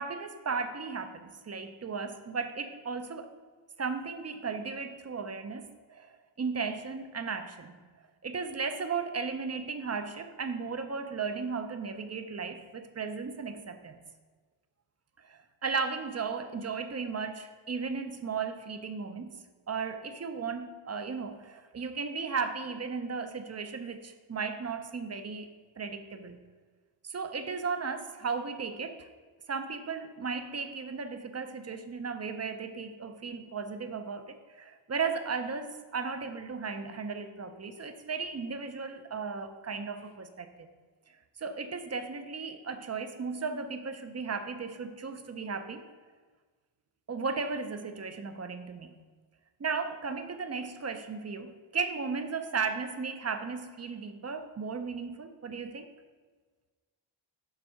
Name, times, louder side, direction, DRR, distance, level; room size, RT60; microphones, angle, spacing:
voice 1, 0.0-3.3 3.8-7.8 8.2-14.0 15.2-19.4 19.7-26.4 27.0-29.1 29.5-40.7 41.1-45.8 47.1-49.0 49.6-55.9, right 5 dB, 35° right, 8 dB, 0.5 m, -35 dB
7.1 x 3.6 x 5.5 m, 1.4 s
wide cardioid pair, 125°, 49 cm